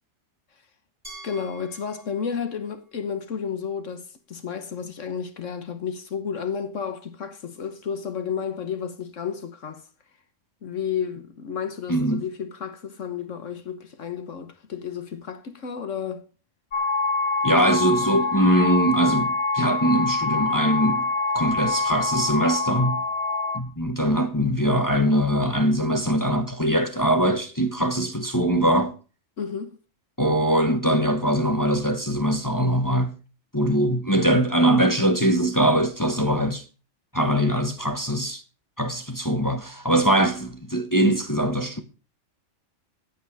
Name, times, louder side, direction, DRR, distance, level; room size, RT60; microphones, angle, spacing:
Glass, 1.0-4.0, right 2 dB, 30° right, 8.1 m, -48 dB
voice 1, 1.2-9.9 10.6-16.3 17.5-17.6 18.0-18.3 29.4-29.8, left 7 dB, 75° left, 1.5 m, -32 dB
voice 2, 11.9-12.2 17.4-21.1 21.3-23.0 23.5-28.9 30.2-33.1 33.5-36.6 37.1-38.4 38.8-41.8, right 1 dB, 15° left, 1.2 m, -22 dB
sound 1, 16.7-23.6, left 3 dB, 60° left, 1.7 m, -25 dB
14.5 x 8.9 x 4.8 m
omnidirectional pair, 1.3 m